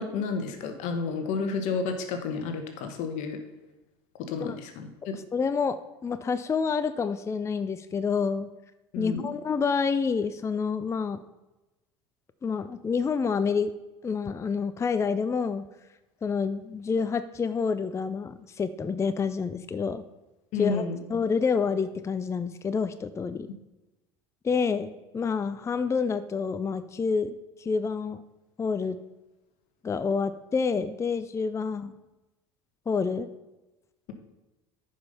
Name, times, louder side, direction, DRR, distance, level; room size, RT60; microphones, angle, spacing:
voice 1, 0.0-3.4 4.3-5.1 8.9-9.3 20.5-21.0, left 4 dB, 60° left, 6 dB, 1.4 m, -31 dB
voice 2, 5.1-5.8 6.0-8.5 9.0-11.2 12.4-13.7 14.0-15.6 16.2-20.0 20.6-23.5 24.4-28.2 28.6-29.0 29.8-31.9 32.9-33.3, left 5 dB, 20° left, 12 dB, 0.5 m, -28 dB
9.5 x 5.4 x 5.6 m, 1.0 s
hypercardioid pair, 80°, 14 cm